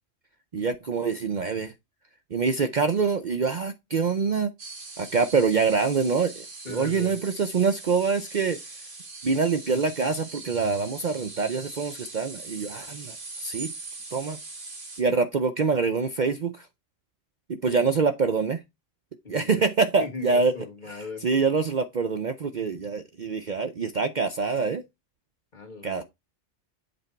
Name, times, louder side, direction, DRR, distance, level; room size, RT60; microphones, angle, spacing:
voice 1, 0.5-1.7 2.3-4.5 5.0-6.3 6.7-8.6 9.2-13.2 13.4-13.7 14.1-14.4 15.0-16.7 17.5-18.6 19.3-20.5 21.2-24.8 25.8-26.0, right 5 dB, 45° right, 0.7 m, -25 dB
sound 1, 4.6-15.0, right 3 dB, 90° right, 2.4 m, -41 dB
voice 2, 6.6-7.2 17.6-17.9 19.2-19.6 20.0-21.2 25.5-26.0, left 3 dB, 40° left, 1.7 m, -39 dB
8.0 x 4.2 x 4.5 m
omnidirectional pair, 1.2 m